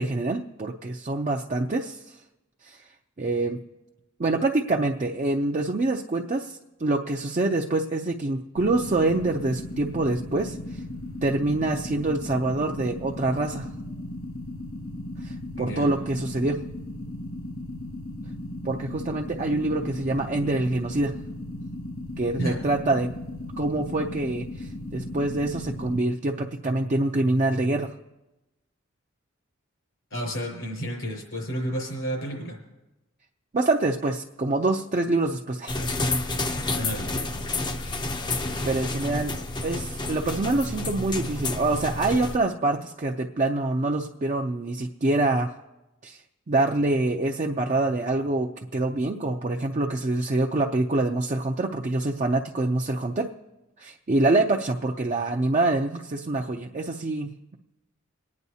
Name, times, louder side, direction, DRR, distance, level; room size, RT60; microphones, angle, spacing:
voice 1, 0.0-2.2 2.6-2.9 3.2-3.6 4.2-10.8 11.2-13.7 15.2-16.6 18.6-21.1 22.2-23.1 23.6-27.9 33.5-35.8 38.7-39.3 39.6-45.5 46.0-46.2 46.5-53.3 53.8-57.5, right 2 dB, 35° right, 1 dB, 0.5 m, -25 dB
sound 1, 8.6-26.0, left 1 dB, 70° left, 1.4 m, -36 dB
voice 2, 15.6-15.9 22.4-22.5 30.1-32.6 36.7-37.2, right 1 dB, 90° left, 0 dB, 5.3 m, -31 dB
sound 2, 35.7-42.4, left 2 dB, 20° left, 0.5 m, -29 dB
28.5 x 9.5 x 2.8 m, 1.0 s
head